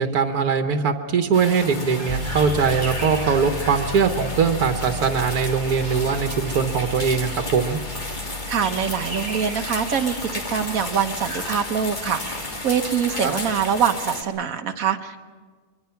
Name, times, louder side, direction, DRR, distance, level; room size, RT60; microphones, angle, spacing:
voice 1, 0.0-7.8 13.2-13.3, right 6 dB, 90° right, 6 dB, 1.7 m, -21 dB
sound 1, 1.3-14.2, left 2 dB, 30° left, 1.9 m, -33 dB
sound 2, 2.0-13.7, right 1 dB, 25° right, 7.7 m, -40 dB
sound 3, 2.1-13.9, left 2 dB, 45° right, 1.8 m, -36 dB
voice 2, 8.5-12.4 12.6-15.2, right 7 dB, 65° right, 7 dB, 1.5 m, -24 dB
24.0 x 23.5 x 5.9 m, 1.5 s
omnidirectional pair, 1.6 m